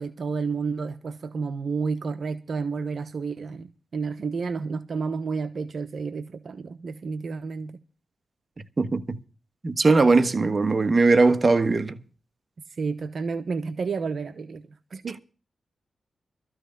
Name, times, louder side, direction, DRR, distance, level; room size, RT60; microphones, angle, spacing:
voice 1, 0.0-7.8 12.7-15.2, right 4 dB, 65° right, 1.0 m, -31 dB
voice 2, 8.8-9.2 9.6-12.0, right 3 dB, 40° right, 1.3 m, -20 dB
13.5 x 6.3 x 9.7 m
cardioid pair, 65°, 0 cm